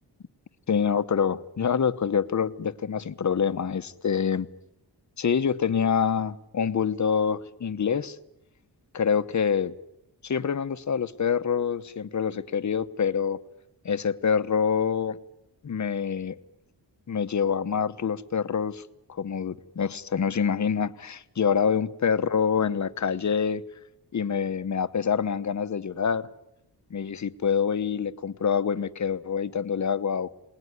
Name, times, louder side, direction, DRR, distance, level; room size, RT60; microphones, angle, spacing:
voice 1, 0.7-4.5 5.2-8.2 8.9-9.7 10.2-13.4 13.8-15.2 15.6-16.3 17.1-23.6 24.1-26.3 26.9-30.5, left 7 dB, 45° left, 12 dB, 1.0 m, -26 dB
28.5 x 20.0 x 9.7 m, 0.85 s
wide cardioid pair, 160°, 41 cm